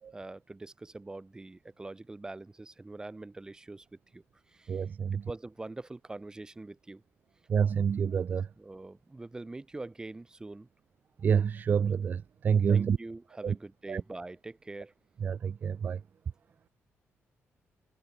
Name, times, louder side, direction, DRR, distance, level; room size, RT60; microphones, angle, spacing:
voice 1, 0.1-3.8 4.1-4.2 4.5-4.8 5.1-7.0 8.6-10.7 12.7-14.9, right 2 dB, 15° right, 6.6 m, -44 dB
voice 2, 4.7-5.2 7.5-8.5 11.2-13.0 13.4-13.6 13.9-14.0 15.2-16.0, right 7 dB, 40° right, 0.4 m, -27 dB
cardioid pair, 140°, 5 cm